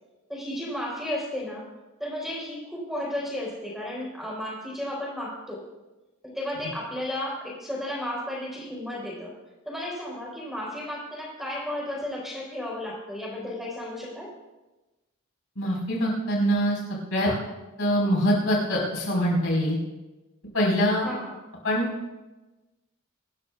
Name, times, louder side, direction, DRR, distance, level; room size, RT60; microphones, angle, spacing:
voice 1, 0.3-1.7 2.0-5.6 6.2-9.3 9.6-14.3 21.0-21.4, left 1 dB, ahead, -4 dB, 4.6 m, -33 dB
voice 2, 15.5-16.8 17.1-17.3 17.8-19.8 20.5-21.1 21.6-21.9, equal, 70° left, -3 dB, 4.9 m, -23 dB
24.5 x 12.5 x 2.5 m, 1.1 s
head